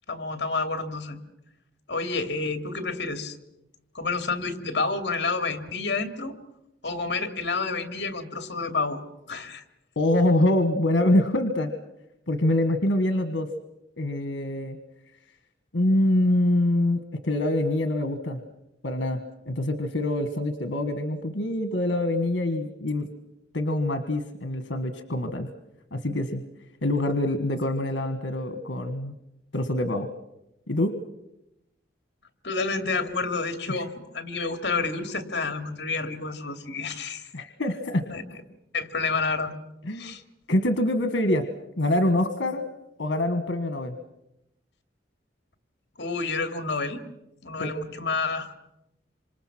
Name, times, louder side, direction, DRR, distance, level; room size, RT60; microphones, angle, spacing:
voice 1, 0.1-1.2 1.9-3.4 3.9-6.3 6.8-9.0 9.3-9.6 32.4-37.3 38.1-38.2 38.7-39.5 39.9-40.2 46.0-47.0 47.4-48.5, left 4 dB, 65° left, 7 dB, 2.4 m, -29 dB
voice 2, 9.9-11.7 12.3-13.5 13.9-14.8 15.7-18.4 18.8-23.1 23.5-25.5 25.9-26.4 26.8-29.1 29.5-30.1 30.7-30.9 33.7-33.8 37.3-38.0 39.8-40.1 40.5-41.5 41.8-42.6 43.0-44.0 47.6-47.7, left 1 dB, 85° left, 8 dB, 1.5 m, -25 dB
26.5 x 26.5 x 6.1 m, 0.87 s
head